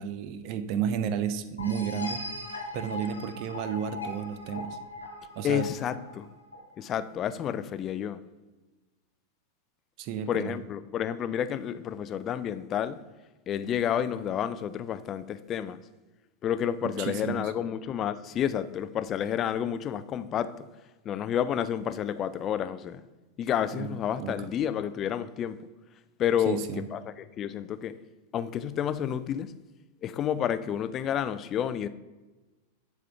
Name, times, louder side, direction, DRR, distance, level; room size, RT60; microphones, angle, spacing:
voice 1, 0.0-2.2 2.7-4.8 5.4-5.7 10.0-10.5 16.8-17.5 23.7-24.3 26.5-26.9, right 8 dB, 45° right, 0.5 m, -32 dB
sound 1, 1.6-7.1, left 1 dB, 80° left, 1.2 m, -39 dB
voice 2, 5.4-6.3 6.8-8.2 10.3-13.0 13.5-15.8 16.4-20.7 21.0-23.0 23.4-25.6 26.2-28.0 28.3-29.5 30.0-31.9, left 9 dB, 30° left, 0.4 m, -30 dB
11.0 x 3.6 x 3.4 m
figure-of-eight pair, 90°, 0 cm